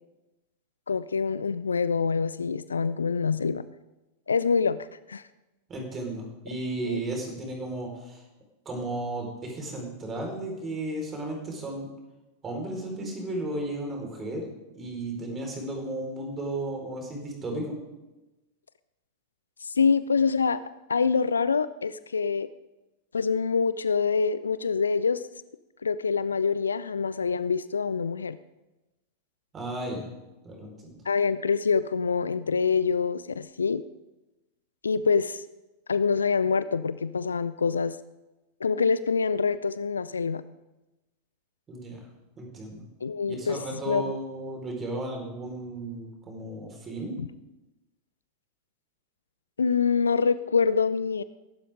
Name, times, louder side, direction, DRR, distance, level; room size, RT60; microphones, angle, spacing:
voice 1, 0.9-3.6 4.3-5.2 6.8-7.0 19.6-20.6 20.9-22.5 23.1-25.2 25.8-28.4 31.1-33.8 34.8-35.4 35.9-38.0 38.6-40.4 43.0-43.6 43.9-44.2 47.2-47.3 49.6-51.2, left 5 dB, 75° left, 16 dB, 0.5 m, -25 dB
voice 2, 5.7-8.2 8.6-11.9 12.4-14.5 14.7-17.8 29.5-30.0 30.4-30.9 41.7-42.0 42.4-42.8 43.3-47.2, right 2 dB, 25° right, 1 dB, 5.0 m, -34 dB
21.5 x 12.0 x 3.8 m, 1.0 s
figure-of-eight pair, 90°, 0 cm